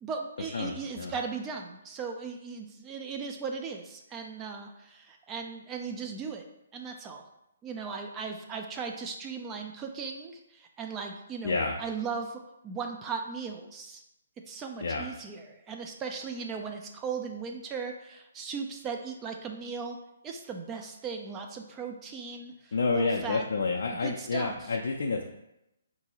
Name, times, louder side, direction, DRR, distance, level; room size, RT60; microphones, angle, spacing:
voice 1, 0.0-6.5 6.7-7.2 7.6-14.0 14.5-20.0 20.2-23.5 24.0-24.8, right 5 dB, 20° right, 3 dB, 0.3 m, -37 dB
voice 2, 0.5-1.1 11.4-11.7 14.8-15.0 22.7-25.2, left 4 dB, 70° left, 1 dB, 0.4 m, -29 dB
3.8 x 2.6 x 2.8 m, 0.86 s
hypercardioid pair, 145°, 0 cm